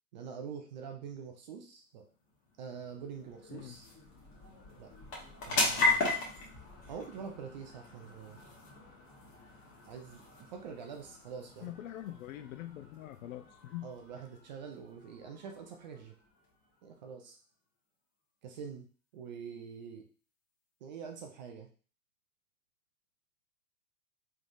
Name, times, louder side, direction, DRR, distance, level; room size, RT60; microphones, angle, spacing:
voice 1, 0.1-2.1 2.6-3.9 4.8-4.9 5.5-6.0 6.9-8.4 9.9-11.7 13.8-16.1 16.8-17.4 18.4-18.9 19.1-20.1 20.8-21.7, right 6 dB, 30° right, 3 dB, 0.4 m, -45 dB
sound 1, 2.1-17.0, left 2 dB, 25° left, 1.2 m, -38 dB
voice 2, 11.6-13.9, left 13 dB, 60° left, 10 dB, 0.5 m, -44 dB
3.4 x 3.2 x 2.6 m, 0.39 s
hypercardioid pair, 130°, 46 cm